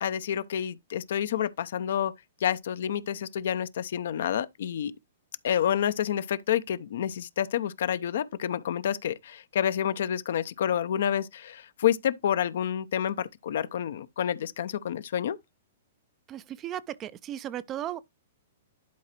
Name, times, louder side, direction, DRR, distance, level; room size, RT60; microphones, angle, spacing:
voice 1, 0.0-2.1 2.4-4.9 5.4-15.4, left 9 dB, 60° left, 0.6 m, -29 dB
voice 2, 16.3-18.0, right 11 dB, 30° right, 0.5 m, -36 dB
11.5 x 4.7 x 3.0 m
figure-of-eight pair, 110°, 0 cm